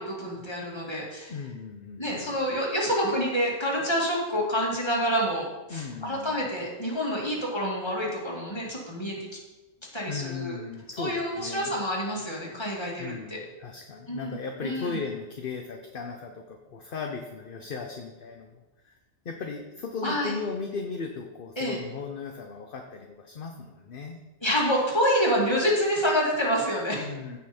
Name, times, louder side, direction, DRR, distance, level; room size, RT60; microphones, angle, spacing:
voice 1, 0.0-1.3 2.0-9.2 9.9-10.6 11.0-13.4 14.1-14.4 14.6-15.0 20.0-20.3 21.6-21.8 24.4-27.1, equal, 25° left, -3 dB, 2.4 m, -27 dB
voice 2, 1.3-2.4 5.7-6.4 10.1-11.8 13.0-19.0 19.2-24.2 27.0-27.4, left 5 dB, 55° left, 3 dB, 1.0 m, -37 dB
15.5 x 5.7 x 4.4 m, 1.1 s
omnidirectional pair, 1.2 m